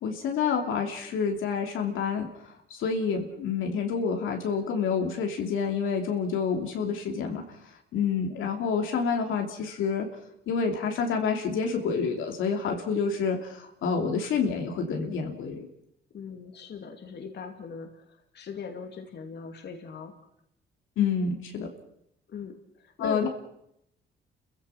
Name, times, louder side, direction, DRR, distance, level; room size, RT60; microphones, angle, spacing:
voice 1, 0.0-2.3 2.7-7.4 7.9-10.1 10.5-15.7 21.0-21.7 23.0-23.3, left 5 dB, 80° left, 2 dB, 3.0 m, -28 dB
voice 2, 16.1-20.1 22.3-23.3, left 6 dB, 60° left, 4 dB, 2.7 m, -40 dB
30.0 x 15.5 x 5.9 m, 0.76 s
cardioid pair, 90°, 20 cm